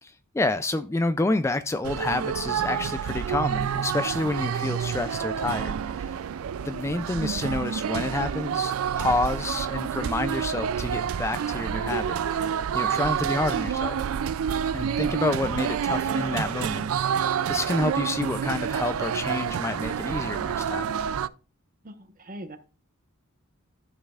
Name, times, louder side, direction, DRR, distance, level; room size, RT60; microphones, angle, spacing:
voice 1, 0.0-6.1 6.6-12.5 12.7-14.0 14.7-20.9, left 2 dB, 15° left, 0.3 m, -29 dB
sound 1, 1.8-21.3, right 8 dB, 75° right, 0.4 m, -28 dB
voice 2, 15.0-15.4 21.8-22.6, right 1 dB, 40° right, 1.0 m, -42 dB
13.0 x 5.4 x 2.4 m
head